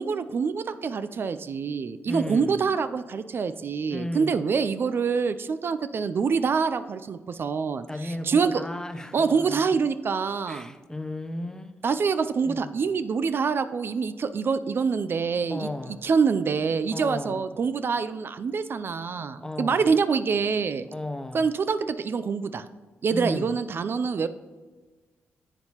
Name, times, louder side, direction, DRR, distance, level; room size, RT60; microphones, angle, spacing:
voice 1, 0.0-8.6 9.1-10.7 11.8-15.7 16.0-20.9 21.3-22.7 23.0-24.3, right 5 dB, 55° right, 12 dB, 0.3 m, -26 dB
voice 2, 2.0-2.6 3.9-4.5 7.9-9.7 10.5-11.7 12.4-12.8 15.5-16.0 16.9-17.5 19.4-19.9 20.9-21.5 23.1-23.5, left 1 dB, 15° left, 10 dB, 0.6 m, -34 dB
9.9 x 7.8 x 2.9 m, 1.3 s
cardioid pair, 70°, 5 cm